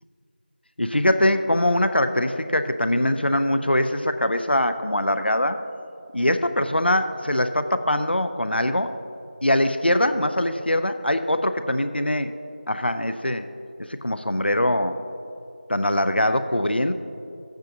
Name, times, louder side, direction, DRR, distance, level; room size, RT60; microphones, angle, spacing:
voice 1, 0.8-5.6 6.1-8.9 9.4-12.3 12.7-13.5 13.9-15.0 15.7-16.9, left 1 dB, 85° left, 9 dB, 0.6 m, -22 dB
11.5 x 8.9 x 2.7 m, 2.7 s
figure-of-eight pair, 175°, 6 cm